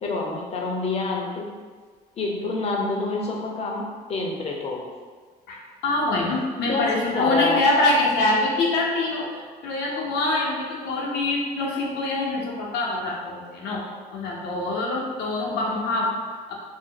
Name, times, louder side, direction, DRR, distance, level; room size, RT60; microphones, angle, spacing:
voice 1, 0.0-1.5 2.2-3.8 4.1-4.8 6.6-7.6, left 3 dB, 40° left, -1 dB, 0.6 m, -27 dB
voice 2, 5.5-13.8 14.1-16.5, left 2 dB, 85° left, -2 dB, 0.7 m, -25 dB
2.6 x 2.1 x 3.7 m, 1.5 s
cardioid pair, 110°, 17 cm